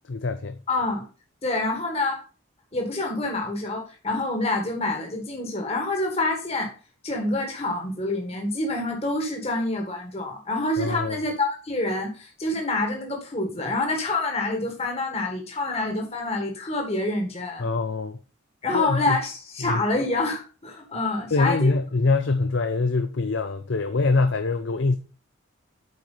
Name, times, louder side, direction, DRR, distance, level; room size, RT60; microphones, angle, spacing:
voice 1, 0.1-0.6 10.8-11.2 17.6-18.2 18.7-19.2 19.6-19.8 21.3-25.0, left 3 dB, 65° left, 0.6 m, -24 dB
voice 2, 0.7-1.0 1.4-2.2 2.7-6.7 7.0-17.7 18.6-21.7, left 2 dB, 30° left, 1.8 m, -27 dB
8.0 x 4.8 x 5.5 m
head